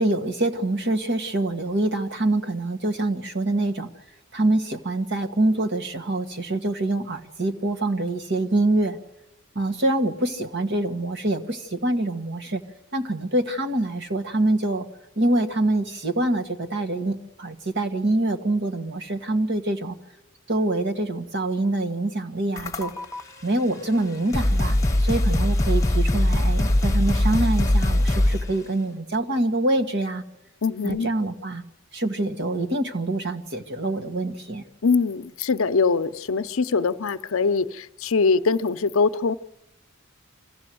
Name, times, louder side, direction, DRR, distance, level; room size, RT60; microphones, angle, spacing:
voice 1, 0.0-3.9 4.3-9.0 9.5-12.6 12.9-14.8 15.2-20.0 20.5-22.9 23.4-30.2 30.8-31.6 31.9-34.6, right 2 dB, 55° right, 5 dB, 1.6 m, -25 dB
sound 1, 22.5-23.2 23.9-24.0 24.3-28.5, left 1 dB, 15° left, 1.2 m, -21 dB
voice 2, 30.6-31.1 34.8-39.3, left 4 dB, 70° left, 12 dB, 0.7 m, -22 dB
25.5 x 15.0 x 7.7 m, 0.92 s
head